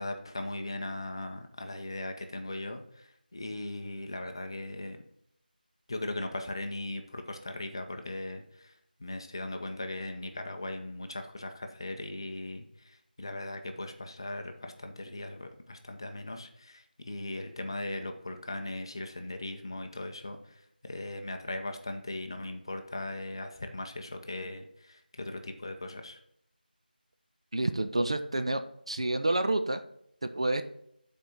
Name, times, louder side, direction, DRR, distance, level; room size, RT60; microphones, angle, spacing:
voice 1, 0.0-5.0 5.9-8.7 9.0-26.2, left 2 dB, 30° left, 6 dB, 0.6 m, -38 dB
voice 2, 27.5-28.6 28.9-29.8 30.3-30.6, right 2 dB, 35° right, 8 dB, 0.4 m, -28 dB
7.6 x 4.4 x 4.9 m, 0.73 s
figure-of-eight pair, 175°, 5 cm